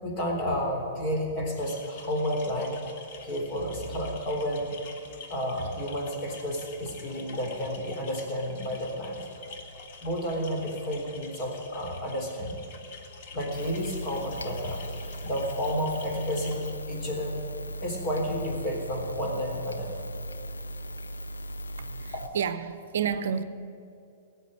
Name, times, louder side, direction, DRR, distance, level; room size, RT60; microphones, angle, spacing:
voice 1, 0.0-2.8 3.2-4.7 5.3-9.2 10.0-12.6 13.3-14.8 15.2-17.4 17.8-20.0 22.1-22.3, equal, 40° left, 3.6 m, -31 dB
sound 1, 1.6-16.7, left 4 dB, 55° left, 1.7 m, -47 dB
sound 2, 13.5-22.3, equal, 85° left, 0.6 m, -38 dB
voice 2, 21.8-23.4, right 7 dB, 65° right, 0.7 m, -30 dB
18.5 x 8.0 x 7.7 m
figure-of-eight pair, 110°, 0 cm